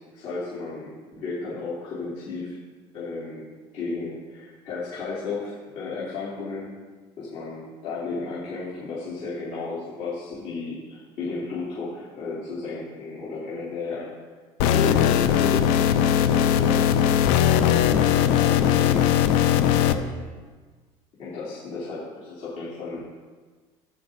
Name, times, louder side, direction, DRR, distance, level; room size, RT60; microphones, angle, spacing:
voice 1, 0.0-2.6 2.9-6.7 7.2-14.1 14.6-15.9 16.2-19.5 19.8-20.3 21.2-23.0, left 3 dB, 65° left, -9 dB, 3.6 m, -34 dB
sound 1, 14.6-19.9, left 9 dB, 80° left, 0.7 m, -19 dB
12.5 x 9.1 x 4.0 m, 1.4 s
cardioid pair, 120°, 12 cm